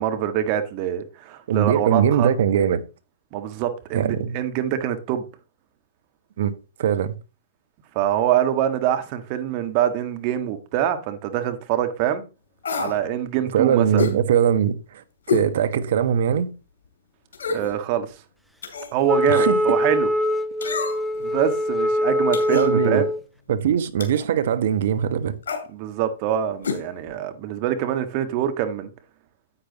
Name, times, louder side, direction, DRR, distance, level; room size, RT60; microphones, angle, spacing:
voice 1, 0.0-2.3 3.3-5.2 7.9-12.2 12.8-14.0 17.5-18.1 18.9-20.1 21.2-23.0 25.7-28.9, right 10 dB, 40° right, 1.6 m, -24 dB
voice 2, 1.5-2.8 3.9-4.3 6.4-7.1 13.5-16.5 19.3-19.6 22.5-23.0 23.5-25.3, right 8 dB, 55° right, 1.1 m, -21 dB
sound 1, 12.6-13.0 14.0-14.2 15.3-15.5 16.0-16.1 17.3-17.7 18.6-19.0 20.6-21.2 22.3-22.7 24.0-24.3 25.4-25.7 26.6-26.8 27.1-27.2, left 5 dB, 65° left, 2.7 m, -27 dB
Wind instrument woodwind instrument, 19.1-23.2, left 1 dB, ahead, 0.7 m, -22 dB
10.0 x 8.5 x 2.9 m
figure-of-eight pair, 115°, 0 cm